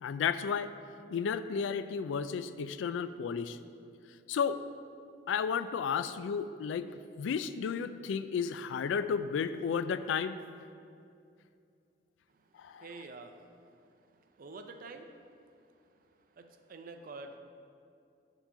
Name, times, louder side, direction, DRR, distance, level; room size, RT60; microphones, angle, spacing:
voice 1, 0.0-0.7 1.1-3.6 4.3-4.6 5.3-10.4 12.6-12.9, left 6 dB, 75° left, 12 dB, 0.3 m, -33 dB
voice 2, 12.8-13.4 14.4-15.1 16.4-17.4, right 3 dB, 50° right, 7 dB, 0.5 m, -46 dB
7.2 x 3.8 x 5.5 m, 2.4 s
head